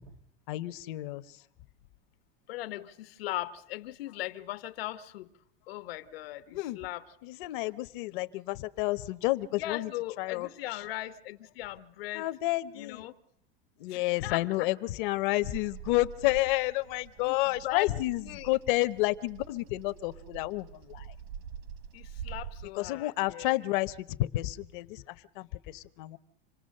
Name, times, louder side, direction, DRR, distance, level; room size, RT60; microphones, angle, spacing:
voice 1, 0.5-1.4 6.5-6.8 7.2-9.9 10.2-10.8 12.1-13.1 13.8-21.1 22.8-26.2, left 19 dB, 55° left, 1.0 m, -30 dB
voice 2, 2.5-5.3 5.7-7.0 9.6-12.3 12.7-13.1 13.9-14.7 17.2-17.3 17.6-18.0 18.2-18.5 21.9-23.5, left 16 dB, 75° left, 1.2 m, -38 dB
Bird vocalization bird call bird song, 15.4-22.7, right 8 dB, 60° right, 1.6 m, -45 dB
27.0 x 18.5 x 6.6 m
supercardioid pair, 155°, 30 cm